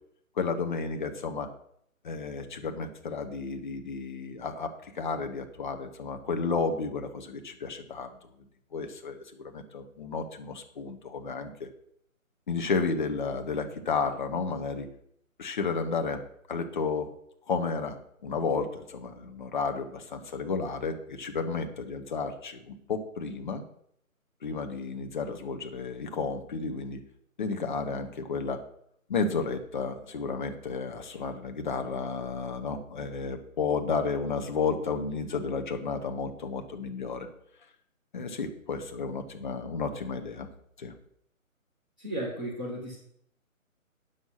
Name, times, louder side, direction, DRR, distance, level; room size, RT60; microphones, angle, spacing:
voice 1, 0.4-1.5 2.0-8.1 8.7-11.7 12.5-14.9 15.4-16.2 16.5-17.1 17.5-23.6 24.4-27.0 27.4-28.6 29.1-37.3 38.1-40.5 40.8-40.9, left 4 dB, 35° left, 6 dB, 1.1 m, -32 dB
voice 2, 42.0-43.0, right 1 dB, 5° right, -10 dB, 0.7 m, -34 dB
9.2 x 6.6 x 5.7 m, 0.71 s
figure-of-eight pair, 150°, 42 cm